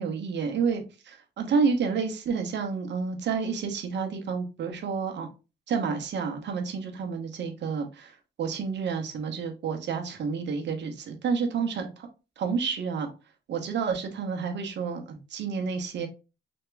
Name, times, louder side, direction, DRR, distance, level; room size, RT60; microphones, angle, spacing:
voice 1, 0.0-5.3 5.7-12.1 12.4-13.1 13.5-16.1, right 5 dB, 60° right, 5 dB, 1.0 m, -30 dB
3.4 x 2.9 x 3.2 m, 0.30 s
cardioid pair, 90°, 20 cm